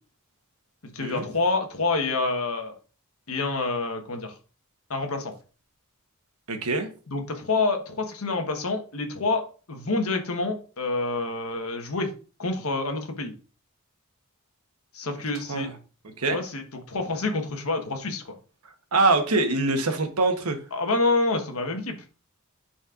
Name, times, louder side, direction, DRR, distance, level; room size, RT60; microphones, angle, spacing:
voice 1, 0.8-2.7 3.3-4.3 4.9-5.3 7.1-12.1 12.4-13.3 14.9-15.7 16.3-18.3 20.7-21.9, left 3 dB, 75° left, 1.3 m, -27 dB
voice 2, 6.5-6.9 15.5-15.7 16.2-16.4 18.9-20.6, right 3 dB, 90° right, 1.2 m, -23 dB
11.0 x 4.3 x 2.5 m
head